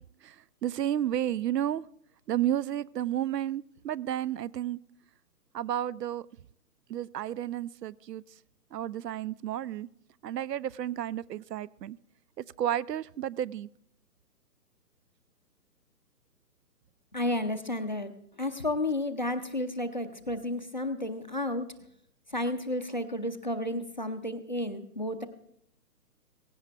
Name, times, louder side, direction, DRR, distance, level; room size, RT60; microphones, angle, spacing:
voice 1, 0.6-1.8 2.3-4.8 5.5-6.2 6.9-8.2 8.7-9.9 10.2-12.0 12.4-13.7, right 11 dB, 80° right, 23 dB, 0.6 m, -32 dB
voice 2, 17.1-18.1 18.4-21.7 22.3-25.3, left 1 dB, 30° left, 7 dB, 0.5 m, -32 dB
17.0 x 16.0 x 3.4 m, 0.70 s
hypercardioid pair, 165°, 48 cm